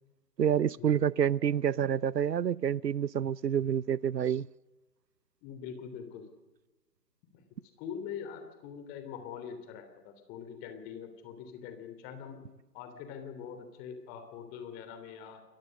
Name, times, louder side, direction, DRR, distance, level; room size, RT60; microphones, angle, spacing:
voice 1, 0.4-4.5, right 8 dB, 80° right, 0.7 m, -28 dB
voice 2, 5.4-6.3 7.3-7.4 7.8-12.4 12.7-15.4, left 7 dB, 20° left, 3.2 m, -43 dB
29.0 x 22.0 x 6.5 m
figure-of-eight pair, 145°, 48 cm